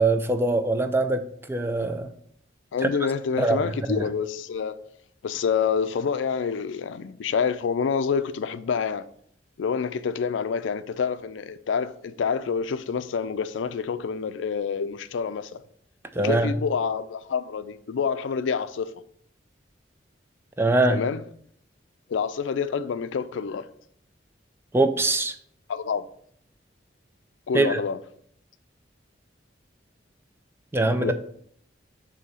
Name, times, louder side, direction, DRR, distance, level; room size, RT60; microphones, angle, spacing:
voice 1, 0.0-2.1 2.8-2.9 3.4-3.6 3.9-4.0 16.2-16.6 20.6-21.0 24.7-25.4 27.5-27.8 30.7-31.1, right 2 dB, 10° right, 0.4 m, -22 dB
voice 2, 2.7-4.8 5.2-9.0 9.6-15.6 16.2-18.9 20.9-21.2 22.1-23.7 25.7-26.1 27.5-28.0 31.0-31.1, left 6 dB, 80° left, 0.4 m, -27 dB
6.8 x 2.8 x 5.4 m
head